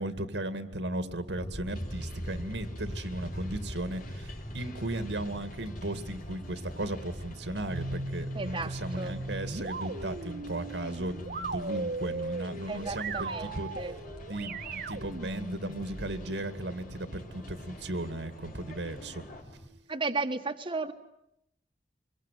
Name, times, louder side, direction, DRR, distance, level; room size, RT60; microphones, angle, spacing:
voice 1, 0.0-13.7 14.3-19.2, right 1 dB, 85° right, 10 dB, 2.3 m, -36 dB
sound 1, 1.3-19.7, equal, 30° left, 4.9 m, -43 dB
sound 2, 1.7-19.4, left 2 dB, 55° left, 4.3 m, -52 dB
sound 3, 7.7-16.3, right 3 dB, 55° right, 1.4 m, -38 dB
voice 2, 8.3-9.2 12.7-14.0 19.9-20.9, right 3 dB, 30° right, 4 dB, 1.5 m, -34 dB
25.5 x 22.5 x 9.3 m, 0.79 s
head